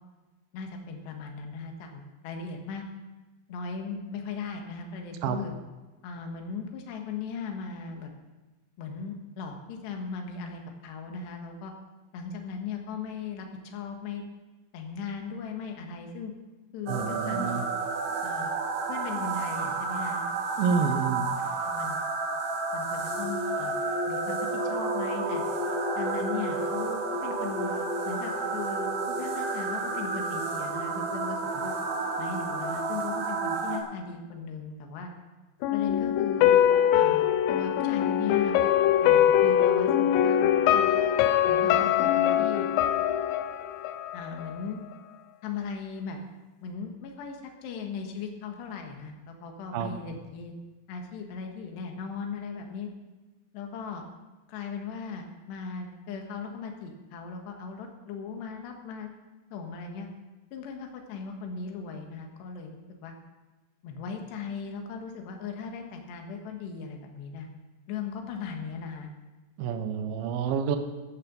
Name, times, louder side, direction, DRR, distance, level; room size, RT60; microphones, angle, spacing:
voice 1, 0.5-2.8 3.5-5.5 6.0-8.1 8.8-11.7 12.1-14.2 14.7-16.3 16.7-17.5 18.2-18.5 18.9-20.2 20.6-21.0 21.3-22.0 22.7-23.8 24.1-25.4 26.0-27.7 28.1-31.7 32.2-35.1 35.7-36.7 36.9-38.5 39.0-40.9 41.5-42.7 44.1-44.8 45.4-46.2 46.6-50.5 50.9-52.9 53.5-54.0 54.5-59.1 59.5-60.1 60.5-63.1 63.8-67.5 67.9-69.1, left 5 dB, 65° left, 3 dB, 3.4 m, -38 dB
sound 1, 16.9-33.8, right 3 dB, 70° right, 4.2 m, -30 dB
voice 2, 16.9-17.6 20.6-21.2 49.7-49.9 69.6-70.8, right 6 dB, 90° right, 7 dB, 2.0 m, -28 dB
sound 2, 35.6-44.6 44.9-45.0, left 10 dB, 85° left, 2.5 m, -23 dB
13.5 x 13.5 x 5.4 m, 1.2 s
omnidirectional pair, 5.9 m